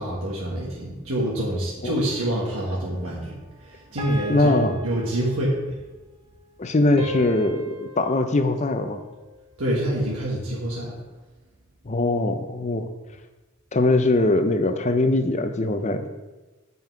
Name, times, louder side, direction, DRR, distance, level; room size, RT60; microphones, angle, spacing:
voice 1, 0.0-3.3 3.6-5.6 9.6-10.9, right 1 dB, 85° right, -5 dB, 1.5 m, -26 dB
sound 1, 2.1-2.8 4.0-5.8 7.0-9.4, equal, 25° right, 1.4 m, -38 dB
voice 2, 4.3-4.7 6.6-9.0 11.9-12.9 13.7-16.1, left 2 dB, 35° left, 8 dB, 0.5 m, -21 dB
7.8 x 5.4 x 4.6 m, 1.2 s
head